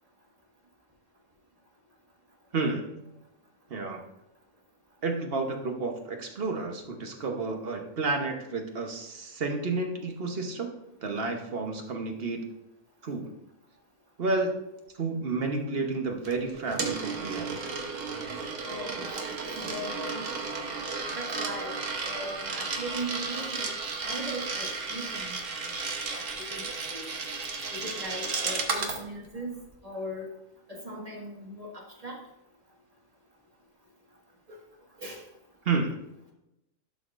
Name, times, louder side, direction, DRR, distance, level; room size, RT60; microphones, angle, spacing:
voice 1, 2.5-2.8 3.7-4.0 5.0-10.7 11.0-12.4 13.0-13.3 14.2-14.6 15.0-17.5 35.6-36.0, right 3 dB, 50° right, 3 dB, 1.2 m, -31 dB
Coin (dropping), 16.3-29.0, right 4 dB, 65° right, 1.4 m, -34 dB
voice 2, 18.6-20.3 21.1-21.8 22.0-23.8 24.0-27.1 27.7-29.5 29.8-30.3 30.7-32.2 34.5-34.6 35.0-35.2, right 1 dB, 25° right, -2 dB, 1.8 m, -39 dB
11.5 x 5.9 x 2.5 m, 0.90 s
omnidirectional pair, 1.4 m